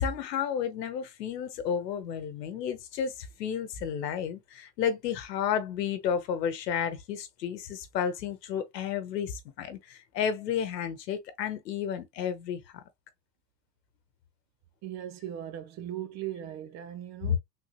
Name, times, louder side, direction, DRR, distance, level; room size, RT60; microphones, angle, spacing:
voice 1, 0.0-12.8, left 8 dB, 75° left, 1.0 m, -32 dB
voice 2, 14.8-17.4, right 11 dB, 35° right, 0.6 m, -38 dB
3.7 x 2.8 x 2.3 m
hypercardioid pair, 95°, 50 cm